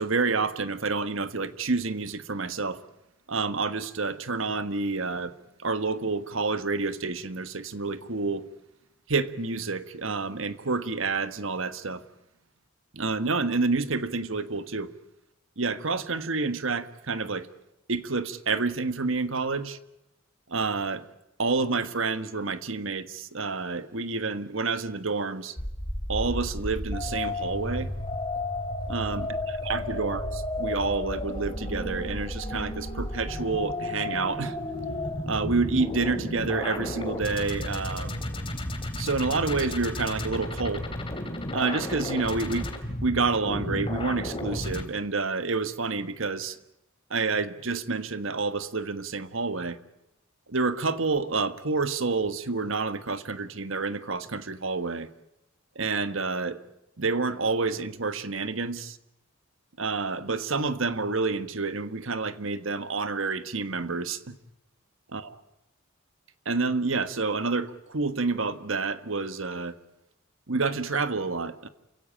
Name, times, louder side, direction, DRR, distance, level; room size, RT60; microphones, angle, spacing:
voice 1, 0.0-2.8 3.3-5.3 5.6-8.5 9.1-12.0 12.9-14.9 15.6-17.5 17.9-19.8 20.5-21.0 21.4-25.6 26.1-27.9 28.9-29.4 29.6-34.6 35.2-38.2 39.0-40.9 41.5-42.7 43.0-46.6 47.1-49.8 50.5-55.1 55.7-56.6 57.0-59.0 59.8-64.4 65.1-65.2 66.4-69.7 70.5-71.7, right 3 dB, 70° right, 1.4 m, -28 dB
sound 1, 25.6-44.8, left 1 dB, 25° left, 3.1 m, -33 dB
28.5 x 16.5 x 10.0 m
head